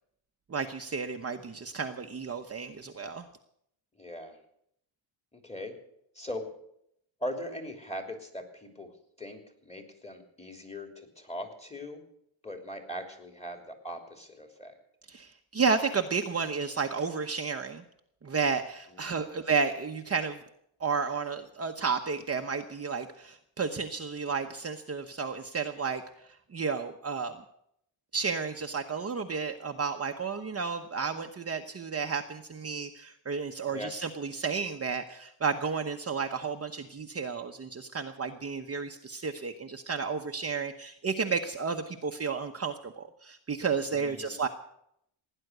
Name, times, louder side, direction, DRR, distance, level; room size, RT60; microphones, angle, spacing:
voice 1, 0.5-3.2 15.1-17.8 18.2-20.4 20.8-26.0 26.5-27.3 28.1-44.5, right 5 dB, 30° right, 4 dB, 1.0 m, -32 dB
voice 2, 4.0-4.4 5.3-5.7 6.1-6.4 7.2-8.9 9.2-12.0 12.4-14.7 19.0-19.3 33.7-33.9 44.0-44.4, equal, 15° left, 5 dB, 3.1 m, -40 dB
17.0 x 10.0 x 8.0 m, 0.74 s
cardioid pair, 120°, 50 cm